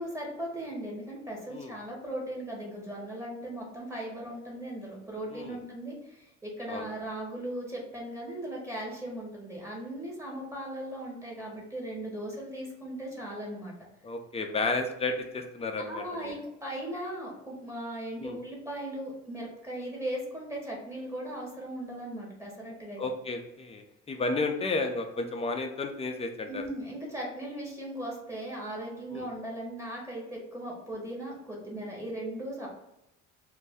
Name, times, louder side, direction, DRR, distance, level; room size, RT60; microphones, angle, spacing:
voice 1, 0.0-13.7 15.9-23.0 26.5-32.7, right 1 dB, 10° right, -3 dB, 1.1 m, -38 dB
voice 2, 14.0-16.3 18.2-18.4 23.0-26.6 29.1-29.3, left 3 dB, 20° left, 3 dB, 0.5 m, -32 dB
2.6 x 2.1 x 3.4 m, 0.84 s
cardioid pair, 90°, 30 cm